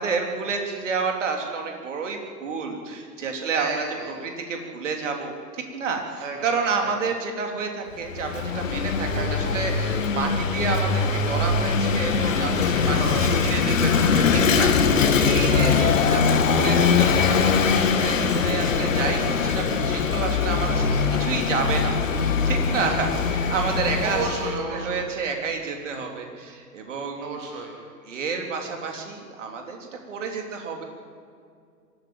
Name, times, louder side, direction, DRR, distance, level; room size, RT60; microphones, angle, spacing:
voice 1, 0.0-3.8 4.2-20.9 21.2-24.3 24.7-27.4 28.1-30.8, right 5 dB, 45° right, 3 dB, 3.5 m, -30 dB
voice 2, 3.5-4.2 6.2-7.2 9.1-9.6 12.9-13.3 15.5-15.9 20.9-21.6 22.8-23.1 24.0-25.1 27.2-27.8, right 3 dB, 5° right, 2 dB, 0.6 m, -33 dB
Vehicle / Engine, 8.0-24.6, left 5 dB, 50° left, 2.0 m, -22 dB
23.5 x 14.0 x 9.4 m, 2.3 s
figure-of-eight pair, 125°, 50 cm